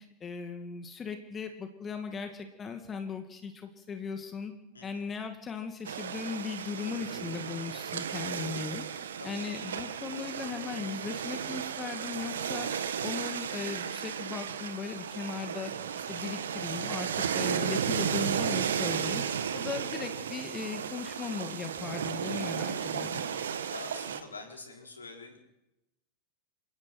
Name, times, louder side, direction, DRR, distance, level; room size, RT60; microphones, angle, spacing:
voice 1, 0.0-4.5 4.8-8.8 9.2-12.7 13.0-19.2 19.5-23.3, left 5 dB, 20° left, 7 dB, 2.2 m, -38 dB
sound 1, 5.8-24.2, right 8 dB, 65° right, 1.4 m, -34 dB
voice 2, 9.2-9.5 22.7-23.0 23.7-25.4, left 3 dB, 75° left, 3 dB, 4.5 m, -46 dB
28.5 x 17.0 x 6.1 m, 0.91 s
figure-of-eight pair, 90°, 0 cm